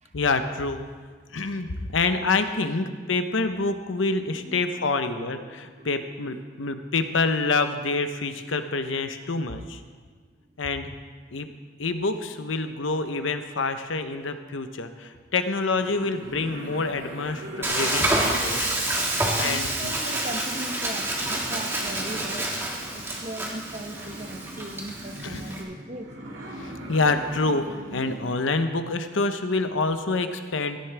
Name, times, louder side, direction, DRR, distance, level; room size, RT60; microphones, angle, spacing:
voice 1, 0.1-0.9 1.3-9.8 10.6-10.9 11.3-11.5 11.8-18.1 18.4-18.7 19.4-19.9 25.2-25.5 26.6-27.6 27.9-30.8, left 3 dB, 85° left, 8 dB, 0.9 m, -27 dB
voice 2, 5.0-7.0 19.4-22.5 22.9-26.1, right 1 dB, 35° right, 6 dB, 0.9 m, -40 dB
sound 1, 15.7-28.3, right 1 dB, 90° right, 2.2 m, -40 dB
Frying (food), 17.6-25.6, right 1 dB, 15° right, 1.5 m, -28 dB
17.0 x 13.5 x 3.5 m, 1.5 s
head